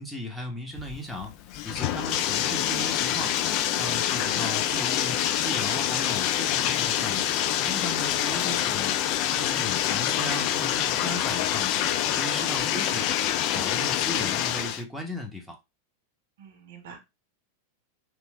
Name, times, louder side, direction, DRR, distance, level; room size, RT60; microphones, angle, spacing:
voice 1, 0.0-3.4 3.8-7.2 7.7-9.0 9.4-11.8 12.2-13.2 13.5-15.6, left 1 dB, ahead, 0.8 m, -36 dB
Bathtub (filling or washing), 0.8-14.8, left 11 dB, 40° left, 0.3 m, -26 dB
voice 2, 4.2-4.6 12.6-13.0 16.4-17.0, right 6 dB, 55° right, 0.8 m, -45 dB
3.1 x 2.9 x 2.3 m
figure-of-eight pair, 90°, 0 cm